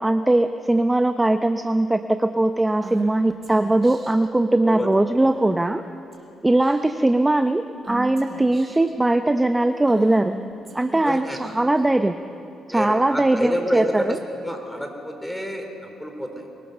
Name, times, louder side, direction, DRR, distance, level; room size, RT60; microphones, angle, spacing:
voice 1, 0.0-5.8 6.4-10.3 10.7-12.2 12.7-14.2, right 2 dB, 15° right, 8 dB, 0.7 m, -20 dB
Female speech woman speaking / Whispering, 2.8-4.3 5.3-5.7 6.1-6.3 6.6-7.1 7.8-8.9 9.8-11.8, right 3 dB, 30° right, 5.3 m, -37 dB
voice 2, 4.6-5.0 11.0-11.5 12.7-16.5, equal, 5° left, 4 dB, 3.8 m, -29 dB
24.0 x 19.0 x 6.8 m, 2.7 s
cardioid pair, 90°, 0 cm